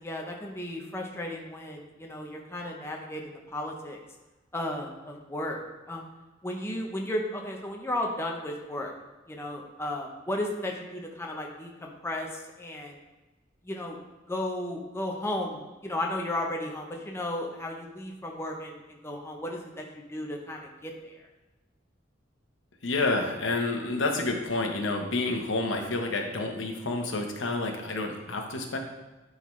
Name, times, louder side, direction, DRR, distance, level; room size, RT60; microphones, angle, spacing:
voice 1, 0.0-4.0 4.5-5.6 5.9-6.1 6.4-8.9 9.3-13.0 13.6-14.0 14.3-21.3, left 1 dB, 15° left, 0 dB, 0.7 m, -34 dB
voice 2, 22.8-28.8, left 2 dB, 75° left, 3 dB, 1.0 m, -29 dB
10.5 x 3.8 x 3.2 m, 1.1 s
head